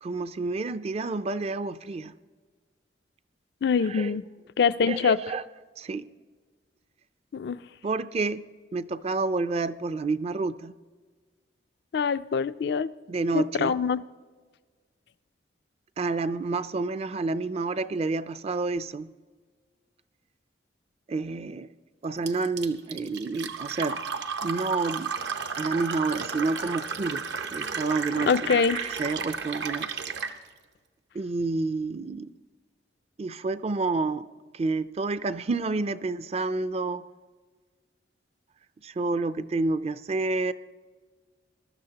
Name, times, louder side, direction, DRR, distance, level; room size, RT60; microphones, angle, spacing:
voice 1, 0.0-2.1 3.9-4.2 4.9-5.4 5.8-6.1 7.8-8.4 8.7-10.7 13.1-13.8 16.0-19.1 21.1-21.7 22.0-24.0 24.4-25.1 25.5-27.2 27.5-29.9 31.1-32.3 33.2-34.3 34.5-37.1 38.8-40.5, right 3 dB, 35° right, 14 dB, 0.4 m, -29 dB
voice 2, 3.6-4.2 4.6-5.2 7.3-7.6 11.9-12.9 13.3-14.0 28.3-28.8, left 6 dB, 65° left, 14 dB, 0.4 m, -24 dB
Fill (with liquid), 22.3-30.4, right 5 dB, 75° right, 0.8 m, -33 dB
20.5 x 13.0 x 2.9 m, 1.5 s
head